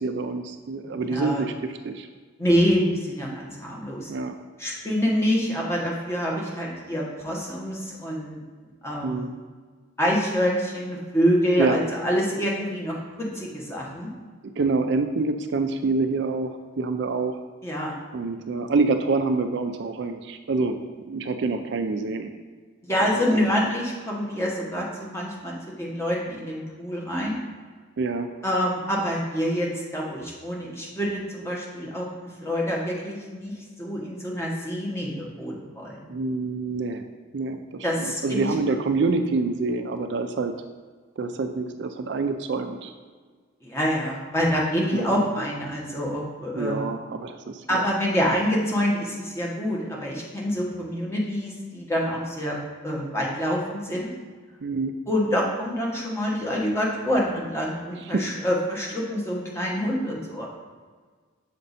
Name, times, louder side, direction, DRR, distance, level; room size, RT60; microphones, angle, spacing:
voice 1, 0.0-2.1 4.1-4.3 9.0-9.3 11.6-11.8 14.6-17.4 18.1-20.8 21.1-22.3 23.0-23.6 28.0-28.3 36.1-37.0 37.3-40.5 41.2-42.9 44.9-45.2 46.6-47.9 54.6-54.9 58.0-58.3, right 3 dB, 55° right, 7 dB, 0.4 m, -27 dB
voice 2, 0.8-1.4 2.4-4.1 4.6-8.4 8.8-9.3 10.0-14.1 17.6-17.9 22.8-27.4 28.4-33.5 33.8-36.0 37.8-38.5 43.6-46.9 47.7-52.6 52.8-54.1 55.1-60.5, equal, 10° left, -3 dB, 1.2 m, -26 dB
6.5 x 5.1 x 4.1 m, 1.5 s
head